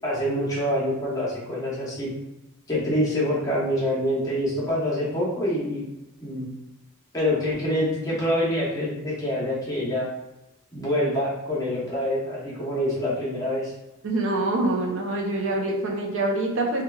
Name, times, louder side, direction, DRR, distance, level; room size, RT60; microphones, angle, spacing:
voice 1, 0.0-2.1 2.7-5.8 6.2-6.5 7.1-10.1 10.7-13.7, equal, 15° left, -7 dB, 0.8 m, -26 dB
voice 2, 14.0-16.8, right 2 dB, 60° right, 0 dB, 0.5 m, -25 dB
3.1 x 2.3 x 2.2 m, 0.97 s
head